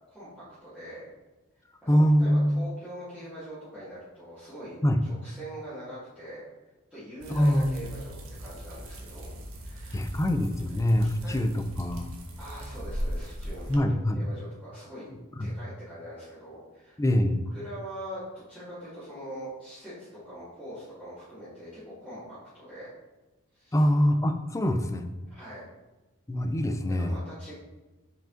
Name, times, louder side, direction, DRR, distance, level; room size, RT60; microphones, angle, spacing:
voice 1, 0.6-1.1 1.8-4.8 5.0-6.5 6.9-9.3 9.6-10.1 11.0-11.3 12.4-15.1 15.4-17.0 17.5-22.9 23.5-23.8 25.3-25.6 27.0-27.5, equal, 5° right, -14 dB, 1.8 m, -43 dB
voice 2, 1.9-2.6 4.8-5.0 7.3-7.8 9.9-12.1 13.7-14.2 15.4-15.5 17.0-17.5 23.7-25.1 26.3-27.2, equal, 15° left, 7 dB, 0.4 m, -24 dB
sound 1, 7.2-13.8, equal, 75° right, 1.0 m, -39 dB
5.0 x 4.9 x 3.8 m, 1.1 s
head